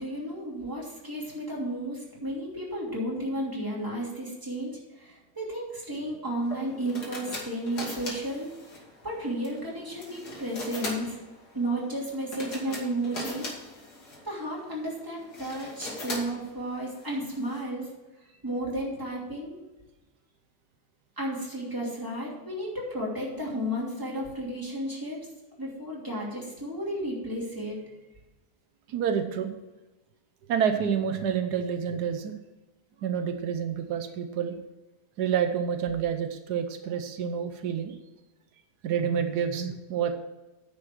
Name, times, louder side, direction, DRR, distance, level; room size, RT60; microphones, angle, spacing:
voice 1, 0.0-8.5 9.0-11.2 11.5-13.4 14.2-17.9 18.4-19.6 21.2-25.2 25.6-27.8, right 1 dB, 10° right, -4 dB, 2.9 m, -33 dB
sound 1, 6.4-17.6, left 2 dB, 80° left, 2.7 m, -40 dB
voice 2, 28.9-29.5 30.5-32.3 33.0-34.6 35.2-38.0 38.8-40.2, right 8 dB, 85° right, 7 dB, 1.3 m, -28 dB
9.7 x 6.1 x 6.1 m, 1.1 s
omnidirectional pair, 1.7 m